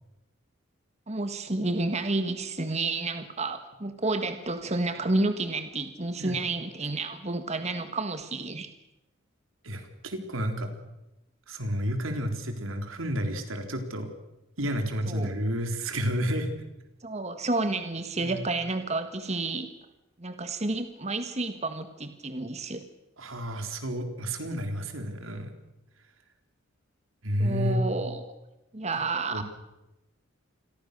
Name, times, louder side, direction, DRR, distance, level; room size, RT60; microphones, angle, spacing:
voice 1, 1.1-8.7 15.1-15.3 17.0-19.7 20.2-22.8 27.4-28.2 28.7-29.4, right 2 dB, 35° right, 8 dB, 1.7 m, -30 dB
voice 2, 9.6-10.7 11.5-14.1 14.6-16.5 18.2-18.4 23.2-25.6 27.2-27.9 29.3-29.4, equal, 90° right, 6 dB, 3.9 m, -30 dB
28.0 x 23.0 x 6.8 m, 0.96 s
head